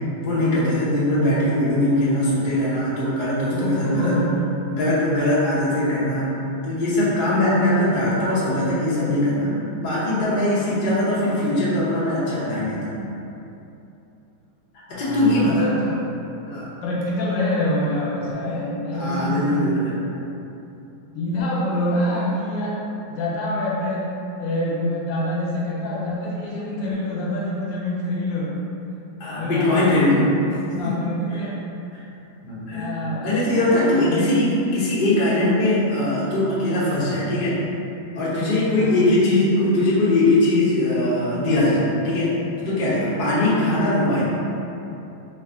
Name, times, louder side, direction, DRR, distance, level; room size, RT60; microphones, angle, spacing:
voice 1, 0.2-4.2 4.7-6.3 6.6-13.0 14.9-15.7 16.5-16.7 18.9-19.9 29.2-30.3 30.7-30.9 31.3-31.5 31.9-32.0 32.4-33.0 33.2-37.6 38.1-42.3 42.6-44.3, left 1 dB, 55° left, -9 dB, 0.5 m, -21 dB
voice 2, 0.9-1.3 3.5-4.4 10.6-10.7 14.9-16.0 16.8-19.6 21.1-22.8 23.1-28.6 29.3-29.9 30.8-31.6 32.7-33.6 33.9-34.2 38.7-39.1 43.2-43.6, left 1 dB, 75° left, -5 dB, 1.4 m, -26 dB
3.1 x 2.5 x 3.6 m, 2.9 s
omnidirectional pair, 2.1 m